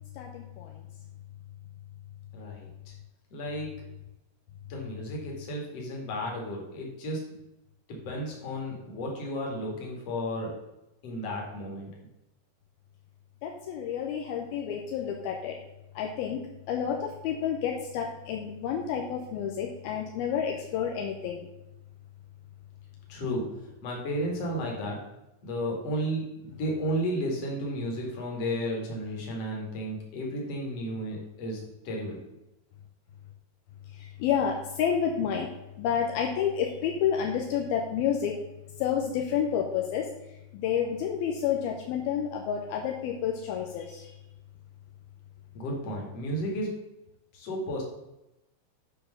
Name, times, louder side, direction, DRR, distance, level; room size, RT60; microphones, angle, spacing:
voice 1, 0.1-0.8 13.4-15.6 16.0-21.5 33.9-35.5 35.8-38.4 38.8-40.1 40.5-44.2, left 8 dB, 75° left, 1 dB, 2.6 m, -30 dB
voice 2, 2.3-2.9 3.3-3.7 4.7-7.2 7.9-10.6 11.0-11.9 23.1-25.0 25.4-32.2 45.5-46.8 47.3-47.8, equal, 45° left, -1 dB, 2.7 m, -33 dB
9.9 x 4.6 x 6.5 m, 0.93 s
omnidirectional pair, 4.5 m